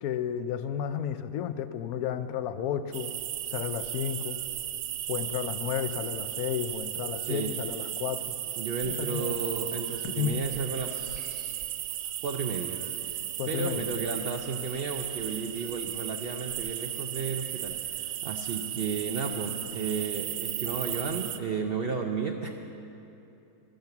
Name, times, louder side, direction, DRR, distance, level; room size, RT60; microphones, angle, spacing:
voice 1, 0.0-3.1 3.5-4.4 5.1-8.3 8.8-9.3 10.2-10.4 13.4-13.9, left 9 dB, 75° left, 11 dB, 1.0 m, -32 dB
sound 1, 2.9-21.4, right 12 dB, 90° right, 1.1 m, -35 dB
voice 2, 8.6-11.6 12.2-22.5, right 5 dB, 55° right, 3 dB, 0.6 m, -33 dB
sound 2, 9.7-10.3 10.6-11.6, equal, ahead, 3.8 m, -57 dB
12.0 x 10.5 x 7.0 m, 2.8 s
omnidirectional pair, 1.6 m